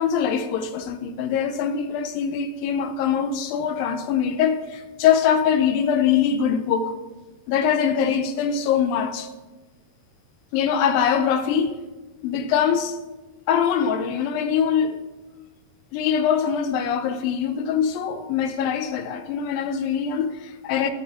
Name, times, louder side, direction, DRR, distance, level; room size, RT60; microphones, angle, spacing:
voice 1, 0.0-6.9 7.5-9.3 10.5-11.8 12.2-13.0 13.5-15.0 15.9-20.9, left 7 dB, 80° left, 2.4 m, -23 dB
12.5 x 6.5 x 6.1 m
omnidirectional pair, 4.3 m